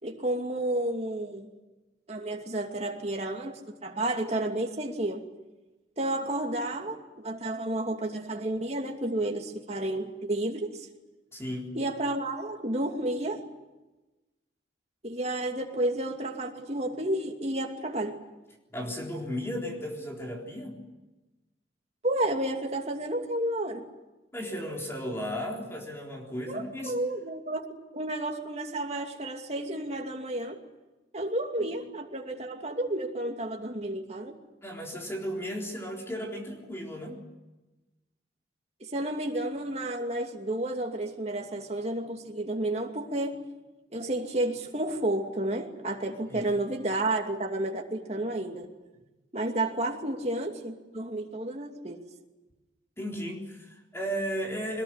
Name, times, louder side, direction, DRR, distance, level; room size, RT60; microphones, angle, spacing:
voice 1, 0.0-1.5 2.1-5.2 6.0-10.9 11.7-13.4 15.0-18.2 22.0-23.8 26.5-27.7 27.9-30.6 31.1-34.3 38.9-43.4 43.9-48.7 49.3-52.0, right 1 dB, 35° right, 3 dB, 2.6 m, -31 dB
voice 2, 11.3-11.7 18.7-20.8 24.3-27.0 31.6-31.7 34.6-37.2 46.3-46.4 53.0-54.8, equal, 15° left, 0 dB, 3.9 m, -35 dB
22.5 x 21.0 x 9.8 m, 1.1 s
head